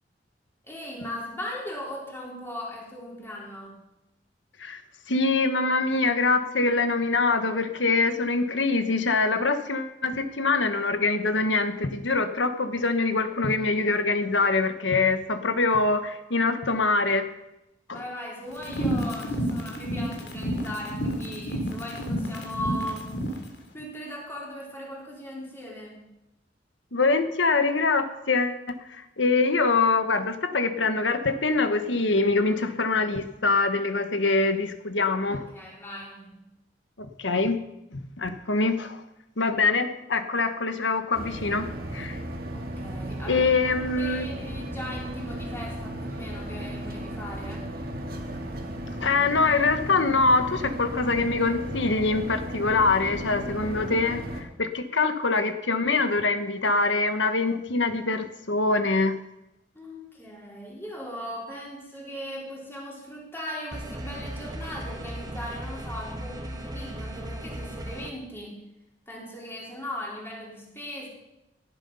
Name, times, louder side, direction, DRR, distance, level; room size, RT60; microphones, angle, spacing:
voice 1, 0.6-3.8 17.9-23.1 23.7-26.1 35.3-36.5 42.5-43.5 43.8-47.7 54.9-55.2 59.7-68.6 69.1-71.1, equal, 15° left, -3 dB, 4.3 m, -38 dB
voice 2, 5.1-17.3 17.9-18.0 26.9-28.6 28.9-35.5 37.0-37.6 37.9-39.0 39.4-42.2 43.3-44.3 49.0-59.2, left 3 dB, 85° left, 8 dB, 1.4 m, -24 dB
sound 1, 18.6-23.4, equal, 65° left, 2.8 m, -30 dB
sound 2, 41.1-54.4, right 1 dB, 55° right, 2.1 m, -35 dB
sound 3, 63.7-68.1, right 1 dB, 20° right, 1.5 m, -37 dB
17.5 x 11.0 x 5.6 m, 0.92 s
head